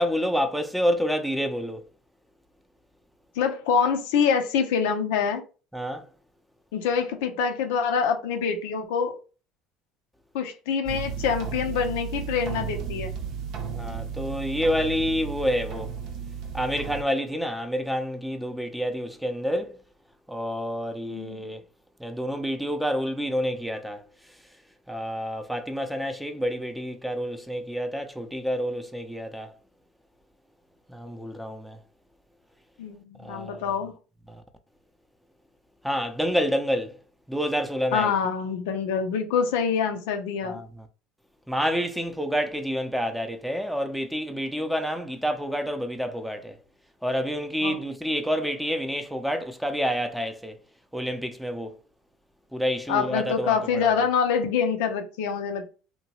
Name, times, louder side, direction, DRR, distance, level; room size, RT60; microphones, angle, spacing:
voice 1, 0.0-1.8 5.7-6.1 13.8-15.9 16.5-19.8 20.3-21.6 22.0-24.0 24.9-29.5 30.9-31.8 33.2-33.7 34.3-34.4 35.8-37.0 37.3-38.1 40.4-40.9 41.5-46.6 47.0-50.6 50.9-51.7 52.5-54.1, equal, ahead, 0.5 m, -28 dB
voice 2, 3.4-5.4 6.7-9.2 10.3-13.1 21.0-21.5 32.8-33.9 37.9-40.6 47.6-47.8 52.9-55.7, left 6 dB, 80° left, 0.5 m, -25 dB
sound 1, 10.8-17.0, right 7 dB, 60° right, 0.6 m, -34 dB
2.8 x 2.2 x 2.8 m
supercardioid pair, 80°, 0 cm